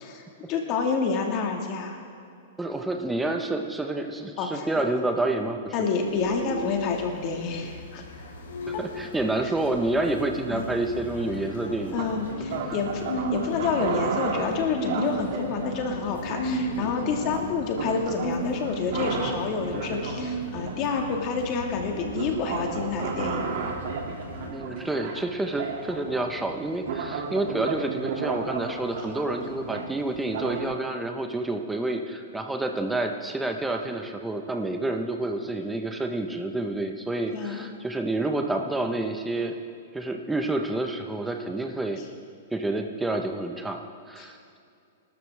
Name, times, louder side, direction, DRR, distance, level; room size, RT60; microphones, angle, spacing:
voice 1, 0.0-2.0 4.4-4.8 5.7-8.0 8.7-8.8 10.5-10.7 11.9-23.5 37.3-37.7 44.2-44.3, left 5 dB, 40° left, 2 dB, 2.1 m, -28 dB
voice 2, 2.6-5.9 8.7-12.0 24.5-39.6 39.9-42.0 42.5-43.8 44.1-44.6, right 2 dB, 5° right, 4 dB, 1.2 m, -29 dB
sound 1, 6.0-24.5, equal, 80° left, 3.9 m, -36 dB
sound 2, 11.8-30.6, right 5 dB, 65° right, 2.7 m, -34 dB
26.5 x 13.0 x 3.6 m, 2.5 s
hypercardioid pair, 145°, 0 cm